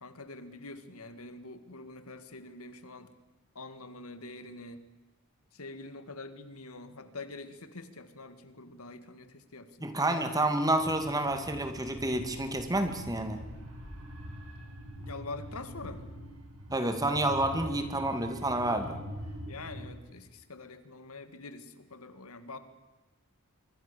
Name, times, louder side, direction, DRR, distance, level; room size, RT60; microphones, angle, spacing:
voice 1, 0.0-3.1 3.6-4.8 5.5-9.9 15.0-16.1 19.5-22.6, left 3 dB, 80° left, 11 dB, 2.1 m, -45 dB
voice 2, 9.8-13.4 16.7-19.0, right 1 dB, 15° right, 7 dB, 2.4 m, -29 dB
sound 1, 10.8-19.9, equal, 80° right, 6.8 m, -44 dB
25.5 x 23.5 x 7.1 m, 1.2 s
head